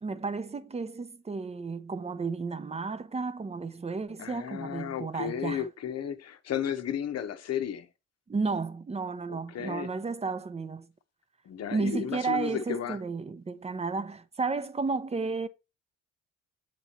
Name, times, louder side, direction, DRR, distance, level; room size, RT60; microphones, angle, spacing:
voice 1, 0.0-5.7 8.3-10.9 11.7-15.5, right 4 dB, 20° right, 0.6 m, -33 dB
voice 2, 4.2-7.9 9.3-9.9 11.4-13.0, left 9 dB, 55° left, 0.9 m, -33 dB
8.0 x 3.1 x 4.2 m
cardioid pair, 85°, 30 cm